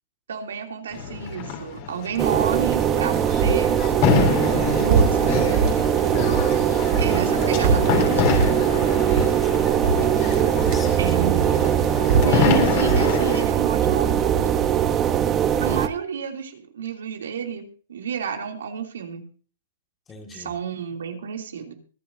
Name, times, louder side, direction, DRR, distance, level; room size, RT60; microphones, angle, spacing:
voice 1, 0.3-3.8 4.8-5.6 6.9-8.5 11.0-11.5 12.2-14.4 15.6-19.3 20.3-21.7, right 7 dB, 90° right, 3 dB, 2.9 m, -30 dB
sound 1, 0.9-13.5, left 7 dB, 40° left, 3.4 m, -27 dB
sound 2, 2.2-15.9, right 10 dB, 20° right, 0.9 m, -21 dB
sound 3, 3.0-6.6 6.9-9.5 9.8-10.9 11.3-13.5, right 4 dB, 35° right, 3.5 m, -23 dB
voice 2, 9.2-9.7 10.3-11.1 12.8-13.1 20.1-20.5, left 3 dB, 15° left, 4 dB, 2.0 m, -39 dB
24.0 x 10.0 x 2.7 m, 0.41 s
hypercardioid pair, 160°, 0 cm